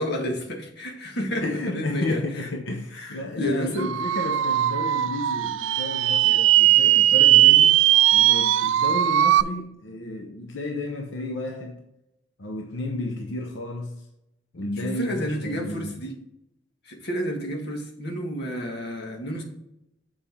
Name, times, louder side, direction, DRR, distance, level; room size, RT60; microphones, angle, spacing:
voice 1, 0.0-2.5 2.9-3.9 14.8-16.1 16.8-19.4, equal, 60° left, 1.7 m, -30 dB
voice 2, 1.4-7.8 8.1-11.8 12.4-14.1 14.5-15.9 19.2-19.4, left 2 dB, 90° left, 0.9 m, -32 dB
sound 1, 3.8-9.4, right 13 dB, 85° right, 0.3 m, -19 dB
7.2 x 5.1 x 4.4 m
head